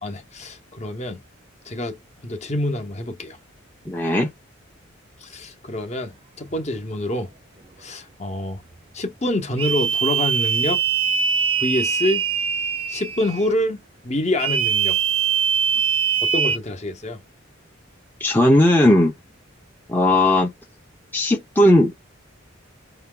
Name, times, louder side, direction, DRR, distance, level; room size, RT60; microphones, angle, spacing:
voice 1, 0.0-1.2 1.6-3.4 5.2-7.3 7.8-8.6 8.9-10.8 11.6-12.2 12.9-15.0 16.2-17.2, left 1 dB, 35° left, 0.9 m, -26 dB
voice 2, 3.9-4.3 18.2-19.1 19.9-20.5 21.1-21.9, left 1 dB, 10° left, 0.6 m, -16 dB
sound 1, 9.6-13.5 14.4-16.6, right 7 dB, 25° right, 0.4 m, -22 dB
5.5 x 2.2 x 3.8 m
head